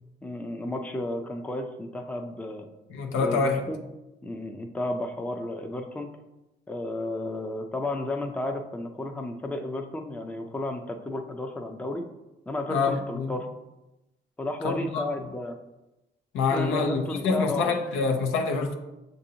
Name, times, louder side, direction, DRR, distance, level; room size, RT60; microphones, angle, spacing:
voice 1, 0.2-2.7 3.2-3.8 4.2-6.1 6.7-12.0 12.5-13.5 14.4-15.6 16.5-17.7, left 1 dB, 5° left, 0.4 m, -32 dB
voice 2, 2.9-3.7 12.7-13.3 14.6-15.1 16.3-18.8, left 4 dB, 90° left, 0.6 m, -26 dB
6.5 x 2.6 x 2.8 m
cardioid pair, 90°, 20 cm